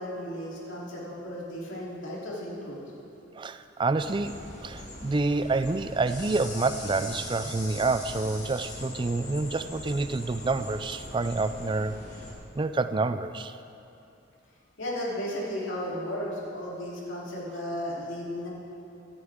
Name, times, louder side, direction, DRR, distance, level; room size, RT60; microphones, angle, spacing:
voice 1, 0.0-2.8 14.8-18.5, equal, 70° left, -6 dB, 3.5 m, -34 dB
voice 2, 3.3-12.0 12.6-13.6, right 3 dB, 25° right, 11 dB, 0.4 m, -28 dB
sound 1, 4.0-12.3, left 2 dB, 35° left, 2.1 m, -41 dB
16.0 x 13.0 x 3.7 m, 2.8 s
head